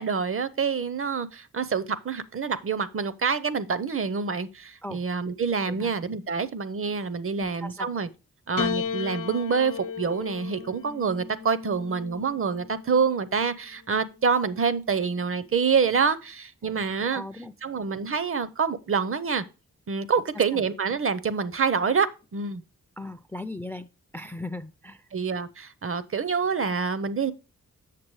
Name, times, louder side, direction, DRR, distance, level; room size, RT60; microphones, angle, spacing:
voice 1, 0.0-8.1 8.5-17.2 17.6-19.4 19.9-22.6 25.1-27.3, right 5 dB, 45° right, 0.6 m, -27 dB
voice 2, 7.4-7.9 16.6-16.8 17.1-17.5 23.0-23.9 24.1-25.0, left 1 dB, 5° left, 0.3 m, -38 dB
Piano, 8.6-13.1 14.1-14.8, left 7 dB, 85° left, 0.8 m, -35 dB
7.5 x 6.9 x 3.1 m
wide cardioid pair, 120°, 31 cm